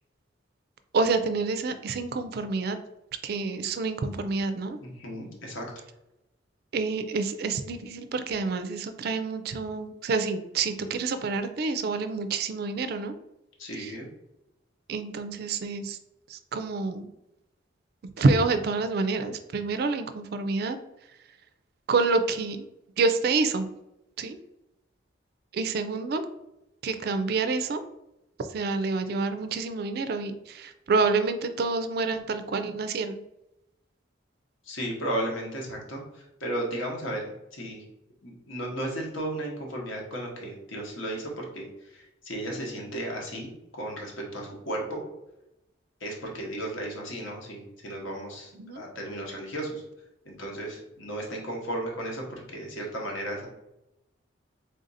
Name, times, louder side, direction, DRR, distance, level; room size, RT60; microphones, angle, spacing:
voice 1, 0.9-2.8 3.2-4.8 6.7-13.1 13.7-14.0 14.9-16.0 16.3-17.1 18.2-20.8 21.9-22.6 23.0-23.7 24.2-24.4 25.5-26.2 26.8-27.8 28.4-33.2 48.5-48.8, right 3 dB, 50° right, 9 dB, 0.3 m, -28 dB
voice 2, 4.8-5.7 13.6-14.1 34.6-37.8 38.2-41.7 41.9-45.0 46.0-49.8 50.2-53.5, right 1 dB, 80° left, -1 dB, 1.1 m, -34 dB
3.5 x 2.5 x 4.0 m, 0.91 s
head